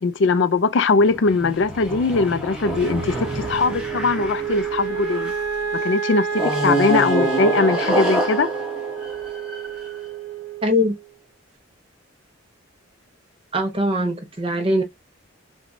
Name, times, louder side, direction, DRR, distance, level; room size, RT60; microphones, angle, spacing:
voice 1, 0.0-5.3 5.7-8.5, left 3 dB, 65° left, 0.4 m, -20 dB
sound 1, 0.9-5.5 6.3-9.9, right 1 dB, 5° right, 1.0 m, -27 dB
Wind instrument woodwind instrument, 2.6-11.1, right 6 dB, 80° right, 0.9 m, -29 dB
voice 2, 10.6-10.9 13.5-14.8, left 1 dB, 25° right, 0.6 m, -21 dB
5.8 x 2.2 x 2.6 m
head